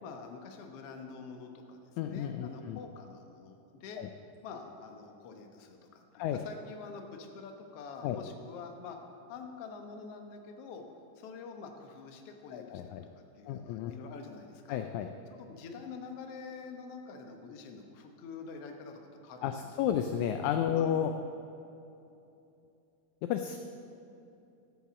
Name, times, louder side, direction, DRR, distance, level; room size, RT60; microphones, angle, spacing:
voice 1, 0.0-4.0 4.4-9.0 9.3-10.8 11.1-12.8 13.4-14.8 15.3-19.7 20.7-20.9, left 5 dB, 65° left, 4 dB, 1.7 m, -46 dB
voice 2, 2.0-2.8 4.0-4.1 6.2-6.4 8.0-8.2 12.5-13.1 13.5-13.9 14.7-15.1 19.4-21.1 23.2-23.6, left 9 dB, 80° left, 6 dB, 1.7 m, -32 dB
13.5 x 7.3 x 7.3 m, 2.8 s
omnidirectional pair, 3.8 m